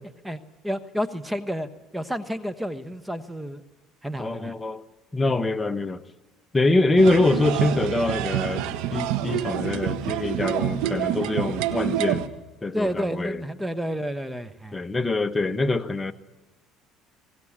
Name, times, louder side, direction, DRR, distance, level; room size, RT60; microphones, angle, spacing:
voice 1, 0.2-3.6 4.0-4.6 5.2-5.3 6.6-6.7 12.7-14.8, equal, 5° right, 12 dB, 1.2 m, -30 dB
voice 2, 4.2-4.8 5.1-6.0 6.5-12.3 12.6-13.4 14.7-16.1, left 2 dB, 15° left, 10 dB, 1.2 m, -24 dB
sound 1, 7.0-12.3, right 11 dB, 80° right, 1.5 m, -27 dB
21.0 x 19.0 x 8.7 m, 1.1 s
supercardioid pair, 100°, 0 cm